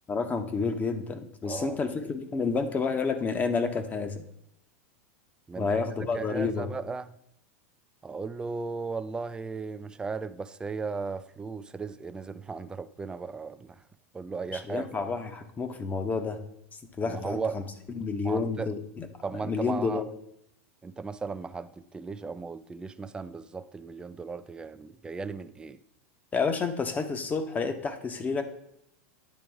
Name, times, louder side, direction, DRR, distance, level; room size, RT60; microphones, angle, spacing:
voice 1, 0.1-4.2 5.6-6.7 14.5-16.4 17.0-17.6 17.9-19.1 19.4-20.1 26.3-28.4, left 4 dB, 20° left, 0.8 m, -30 dB
voice 2, 1.4-1.8 5.5-7.1 8.0-13.8 14.1-15.1 17.1-17.6 18.2-18.7 19.2-20.0 20.8-25.8, right 4 dB, 10° right, 0.4 m, -36 dB
9.3 x 3.4 x 4.7 m
hypercardioid pair, 115°, 7 cm